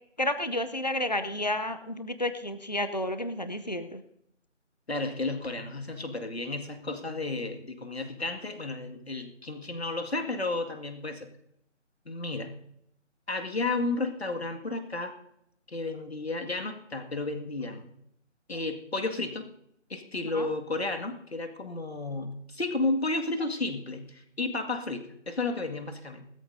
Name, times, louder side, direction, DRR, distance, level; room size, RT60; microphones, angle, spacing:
voice 1, 0.2-4.0 20.3-20.5, left 1 dB, 35° left, 10 dB, 0.6 m, -31 dB
voice 2, 4.9-11.3 12.1-12.5 13.3-15.1 15.7-17.9 18.5-19.4 19.9-26.3, left 2 dB, 55° left, 5 dB, 2.1 m, -32 dB
20.5 x 13.5 x 2.7 m, 0.76 s
figure-of-eight pair, 175°, 37 cm